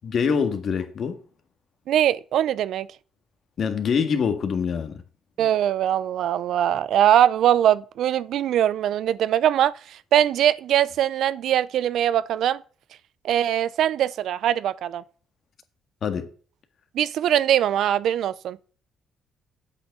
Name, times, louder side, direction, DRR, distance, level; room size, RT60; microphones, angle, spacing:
voice 1, 0.0-1.2 3.6-4.9 16.0-16.3, left 6 dB, 60° left, 1.8 m, -24 dB
voice 2, 1.9-2.9 5.4-9.7 10.1-12.6 13.2-15.0 16.9-18.6, right 11 dB, 75° right, 0.5 m, -21 dB
8.2 x 6.5 x 8.1 m
cardioid pair, 90°, 0 cm